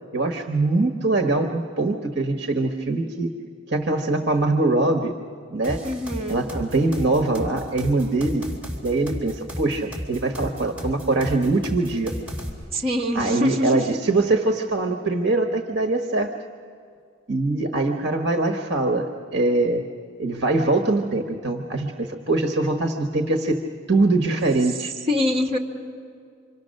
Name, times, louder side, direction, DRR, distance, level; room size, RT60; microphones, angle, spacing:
voice 1, 0.1-3.3 3.7-5.1 5.5-5.8 6.3-8.5 8.8-12.1 13.1-16.3 17.3-19.8 20.2-23.6 23.9-24.9, right 2 dB, 55° right, 4 dB, 1.1 m, -23 dB
sound 1, 5.6-12.5, equal, 5° right, 3.6 m, -33 dB
voice 2, 5.8-6.4 12.7-13.7 25.1-25.6, left 1 dB, 30° right, 2 dB, 1.7 m, -24 dB
27.5 x 25.0 x 6.5 m, 2.2 s
head